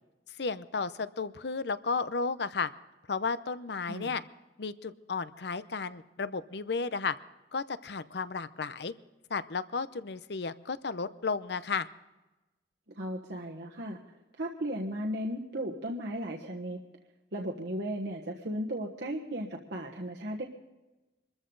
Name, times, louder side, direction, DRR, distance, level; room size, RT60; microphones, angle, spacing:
voice 1, 0.4-2.7 3.1-4.2 4.6-7.2 7.5-8.9 9.3-11.9, left 4 dB, 65° left, 14 dB, 0.7 m, -33 dB
voice 2, 12.9-14.0 14.4-16.8 17.3-20.4, equal, 65° right, -1 dB, 1.4 m, -35 dB
25.0 x 14.0 x 3.9 m, 1.1 s
head